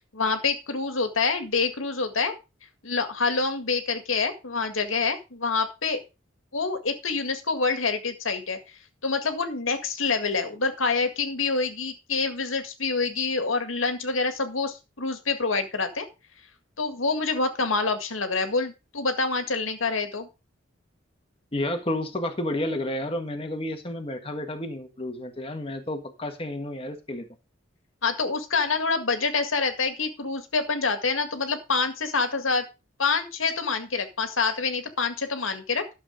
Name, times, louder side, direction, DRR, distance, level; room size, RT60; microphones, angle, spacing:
voice 1, 0.1-2.4 2.8-6.0 6.5-8.6 9.0-16.1 16.8-20.3 28.0-32.7 33.0-35.9, left 4 dB, 85° left, 7 dB, 1.9 m, -26 dB
voice 2, 21.5-27.3, left 1 dB, 30° left, 5 dB, 1.6 m, -31 dB
12.0 x 7.2 x 5.0 m, 0.28 s
head